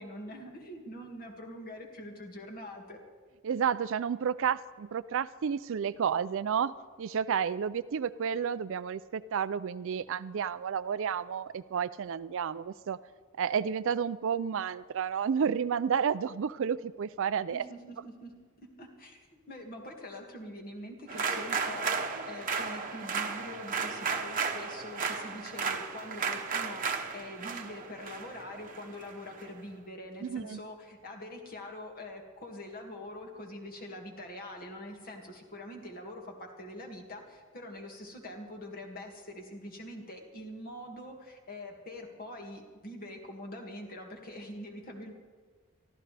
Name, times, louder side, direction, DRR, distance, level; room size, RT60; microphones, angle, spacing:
voice 1, 0.0-3.0 17.5-22.0 22.3-45.1, left 1 dB, 40° left, 2 dB, 2.1 m, -44 dB
voice 2, 3.4-6.7 7.0-13.0 13.4-17.6 30.2-30.6, right 7 dB, 60° right, 16 dB, 0.4 m, -31 dB
sound 1, 21.1-29.4, right 5 dB, 40° right, 1.0 m, -34 dB
23.5 x 14.5 x 3.4 m, 1.5 s
head